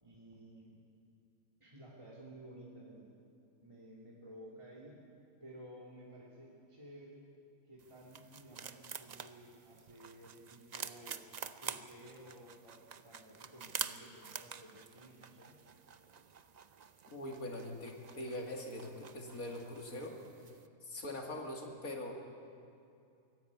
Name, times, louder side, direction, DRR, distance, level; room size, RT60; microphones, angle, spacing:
voice 1, 0.0-0.8 1.6-3.1 3.6-5.0 5.4-7.3 7.6-11.3 11.6-15.6, right 1 dB, 20° right, -6 dB, 2.7 m, -54 dB
sound 1, 7.8-20.7, right 6 dB, 45° right, 0.5 m, -48 dB
voice 2, 17.1-20.2 20.8-22.1, left 1 dB, 90° left, 1 dB, 2.9 m, -42 dB
24.0 x 15.5 x 8.5 m, 2.5 s
omnidirectional pair, 1.5 m